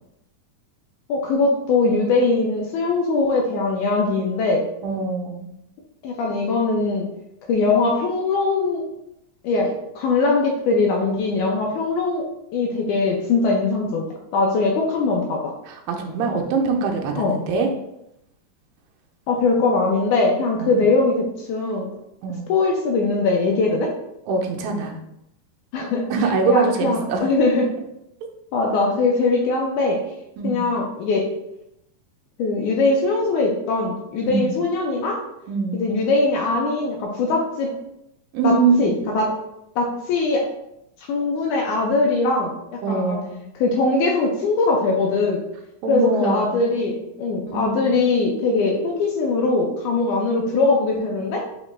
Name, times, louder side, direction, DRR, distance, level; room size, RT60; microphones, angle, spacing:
voice 1, 1.1-4.6 6.0-7.1 7.5-8.8 9.4-12.3 12.5-14.1 14.3-15.5 17.2-17.4 19.3-21.9 22.5-23.9 25.7-26.1 26.5-27.7 28.5-30.0 30.4-31.3 32.4-35.2 35.7-37.7 38.4-39.3 39.8-40.5 41.1-43.2 43.6-45.4 45.9-51.5, left 3 dB, 80° left, 0 dB, 1.8 m, -21 dB
voice 2, 4.8-5.5 11.5-11.6 15.7-17.7 20.6-20.8 22.2-22.5 24.3-25.0 26.1-27.3 30.4-30.6 34.2-34.5 35.5-35.8 38.3-39.0 42.8-43.4 45.8-46.6 47.5-47.9, right 4 dB, 85° right, 2 dB, 2.3 m, -23 dB
5.6 x 2.1 x 3.0 m, 0.82 s
omnidirectional pair, 3.8 m